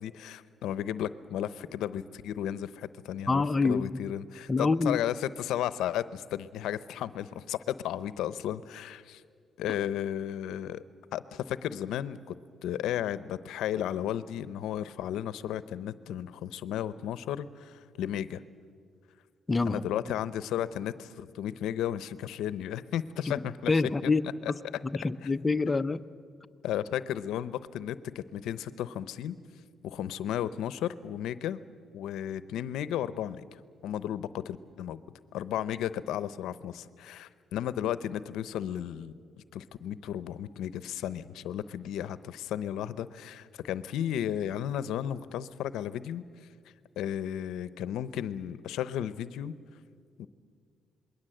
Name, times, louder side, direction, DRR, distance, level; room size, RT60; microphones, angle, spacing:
voice 1, 0.0-9.2 9.6-10.8 11.1-18.4 19.6-23.7 24.0-24.1 24.4-24.5 25.2-25.3 26.6-29.4 29.8-31.6 31.9-33.4 33.8-35.0 35.3-39.1 39.5-46.2 47.0-49.5 50.2-50.3, left 10 dB, 85° left, 15 dB, 0.8 m, -34 dB
voice 2, 3.3-4.0 4.5-5.0 19.5-19.8 23.7-24.2 24.9-26.0, left 3 dB, 25° left, 11 dB, 0.8 m, -26 dB
27.0 x 21.0 x 7.8 m, 2.2 s
cardioid pair, 90°, 0 cm